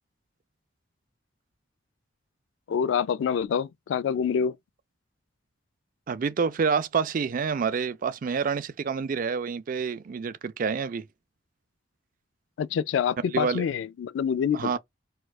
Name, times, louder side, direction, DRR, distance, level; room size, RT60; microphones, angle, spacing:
voice 1, 2.7-4.5 12.6-14.8, left 7 dB, 75° left, 0.3 m, -26 dB
voice 2, 6.1-11.1 13.3-13.6 14.5-14.8, right 5 dB, 45° right, 0.4 m, -28 dB
4.2 x 2.4 x 2.3 m
head